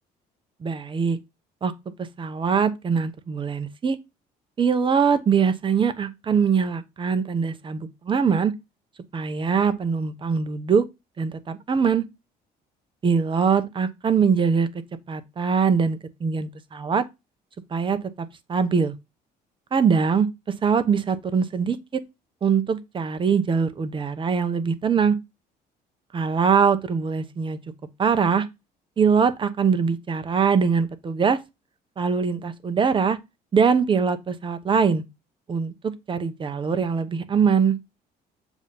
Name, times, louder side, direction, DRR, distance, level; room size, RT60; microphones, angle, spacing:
voice 1, 0.6-1.2 1.6-1.7 2.2-4.0 4.6-8.5 9.1-10.8 11.2-12.0 13.0-14.7 15.1-17.0 17.7-18.9 19.7-20.3 20.6-21.8 22.4-25.2 26.1-27.6 28.0-28.5 29.0-31.4 32.0-33.2 33.5-35.0 35.5-37.8, right 6 dB, 30° right, 0.8 m, -22 dB
7.1 x 2.8 x 5.4 m
cardioid pair, 110°, 17 cm